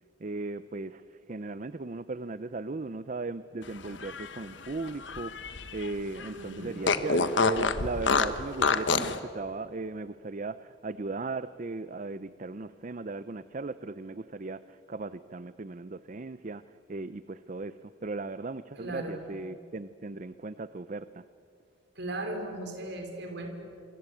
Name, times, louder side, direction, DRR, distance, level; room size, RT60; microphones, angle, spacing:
voice 1, 0.2-21.2, right 3 dB, 40° right, 14 dB, 0.6 m, -37 dB
Fart, 3.8-5.9 6.2-6.3 6.8-9.2, left 4 dB, 65° left, 1.3 m, -27 dB
voice 2, 6.3-6.9 18.8-19.2 21.9-23.5, right 1 dB, 60° right, 4 dB, 4.9 m, -37 dB
27.5 x 25.0 x 8.6 m, 2.5 s
head